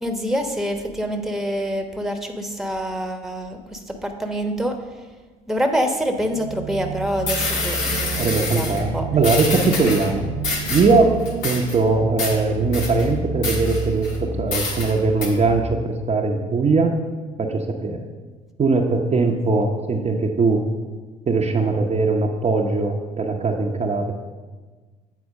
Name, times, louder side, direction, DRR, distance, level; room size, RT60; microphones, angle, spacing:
voice 1, 0.0-4.8 5.5-9.1, equal, ahead, 4 dB, 1.1 m, -26 dB
sound 1, 6.2-15.7, right 3 dB, 85° right, 0.5 m, -31 dB
sound 2, 6.9-7.0 7.3-8.8 9.2-10.1 10.4-11.0 11.3-11.8 12.2-12.4 12.7-13.1 13.4-14.2 14.5-14.9 15.2-15.3, left 3 dB, 75° left, 1.5 m, -26 dB
voice 2, 8.2-10.2 10.7-17.0 17.4-18.1 18.6-20.6 21.3-24.1, right 3 dB, 35° right, 1 dB, 0.8 m, -20 dB
8.3 x 4.3 x 6.3 m, 1.4 s
hypercardioid pair, 55°, 20 cm